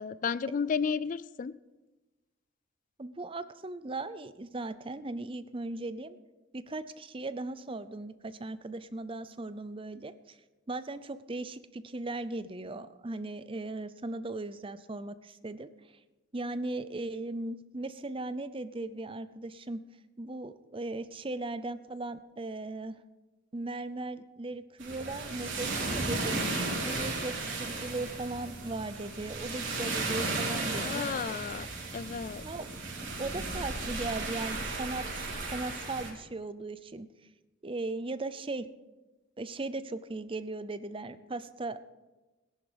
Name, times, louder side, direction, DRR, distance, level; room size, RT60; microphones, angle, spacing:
voice 1, 0.0-1.6 30.8-31.7 31.9-32.4, left 6 dB, 40° left, 18 dB, 0.3 m, -32 dB
voice 2, 3.0-6.2 6.5-10.4 10.7-15.7 16.3-19.8 20.2-23.0 23.5-26.4 26.8-31.1 32.4-32.7 33.0-37.1 37.6-38.7 39.4-41.9, right 2 dB, 30° right, 13 dB, 0.6 m, -38 dB
sound 1, 24.8-36.1, right 3 dB, 70° right, 3.9 m, -35 dB
17.5 x 11.0 x 5.2 m, 1.1 s
head